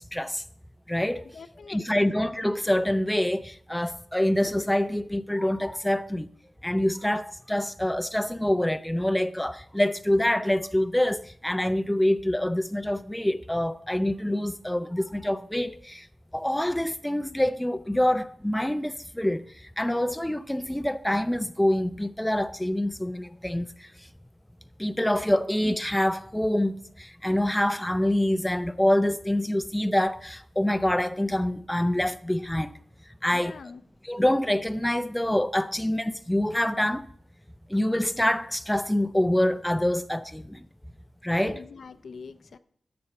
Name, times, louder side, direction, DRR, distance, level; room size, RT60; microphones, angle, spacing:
voice 1, 0.1-0.4 0.9-1.2 1.7-6.3 6.6-16.1 16.3-19.5 19.8-23.9 24.8-32.7 33.2-33.6 34.0-37.1 37.7-40.7 41.2-41.6, left 1 dB, 5° left, 0.4 m, -26 dB
voice 2, 1.3-2.1 33.3-33.8 41.3-42.6, left 5 dB, 80° left, 0.5 m, -44 dB
12.5 x 6.8 x 4.3 m
wide cardioid pair, 120°, 0 cm